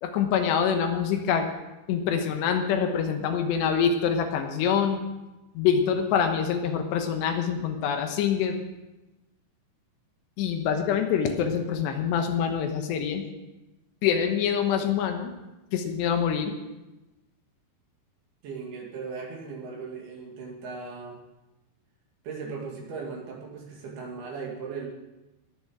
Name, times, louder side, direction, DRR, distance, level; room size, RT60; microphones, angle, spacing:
voice 1, 0.0-1.5 1.9-5.0 5.5-8.6 10.4-13.2 14.0-15.3 15.7-16.5, left 7 dB, 75° left, 5 dB, 3.2 m, -25 dB
voice 2, 18.4-21.2 22.2-24.9, right 5 dB, 65° right, -1 dB, 3.8 m, -38 dB
19.5 x 7.1 x 6.2 m, 1.0 s
omnidirectional pair, 5.2 m